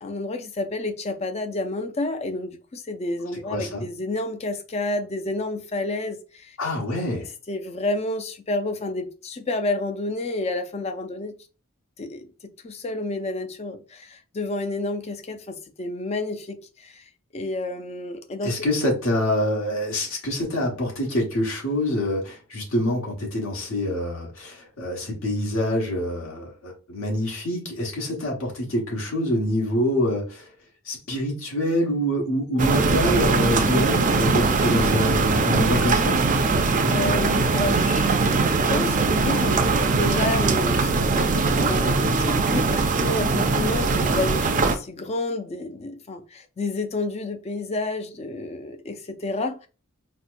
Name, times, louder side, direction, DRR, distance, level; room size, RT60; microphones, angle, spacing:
voice 1, 0.0-6.6 7.5-11.3 12.0-12.2 12.6-18.5 36.9-38.3 38.7-49.7, left 2 dB, 30° left, 0.4 m, -30 dB
voice 2, 3.5-3.8 6.6-7.3 18.4-30.5 30.8-36.2, left 1 dB, 70° left, 1.3 m, -26 dB
sound 1, 32.6-44.8, right 4 dB, 35° right, 0.4 m, -21 dB
4.2 x 2.1 x 2.5 m
head